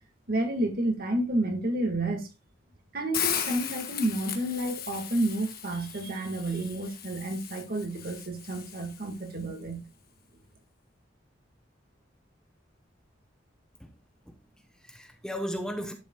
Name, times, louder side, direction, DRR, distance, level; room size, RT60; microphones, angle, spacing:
voice 1, 0.3-2.3 2.9-9.8, right 1 dB, 55° right, 1.9 m, -30 dB
Hiss, 3.1-9.2, left 9 dB, 55° left, 1.4 m, -37 dB
voice 2, 14.3-15.9, equal, 5° left, 0.9 m, -36 dB
11.5 x 6.9 x 2.3 m
head